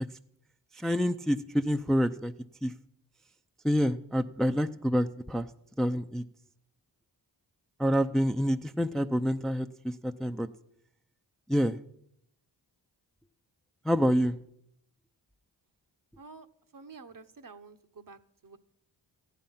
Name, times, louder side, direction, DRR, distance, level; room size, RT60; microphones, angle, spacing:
voice 1, 0.7-2.3 2.6-2.7 3.6-5.5 5.8-6.2 7.8-10.5 11.5-11.8 13.8-14.4, equal, ahead, 8 dB, 0.6 m, -27 dB
voice 2, 16.2-16.5 16.7-18.6, right 4 dB, 45° right, 10 dB, 1.0 m, -50 dB
14.5 x 10.5 x 5.7 m, 0.73 s
cardioid pair, 45°, 47 cm